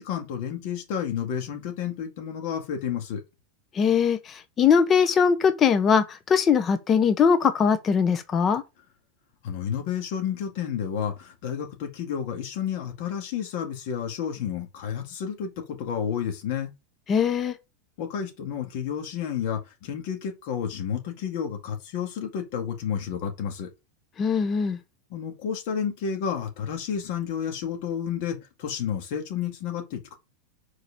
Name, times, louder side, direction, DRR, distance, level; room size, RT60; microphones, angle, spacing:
voice 1, 0.0-3.2 9.4-16.7 18.0-23.7 25.1-30.1, left 8 dB, 55° left, 2.2 m, -31 dB
voice 2, 3.8-4.2 4.6-8.6 17.1-17.5 24.2-24.8, left 6 dB, 25° left, 0.8 m, -21 dB
4.9 x 4.8 x 5.0 m
supercardioid pair, 145°, 0 cm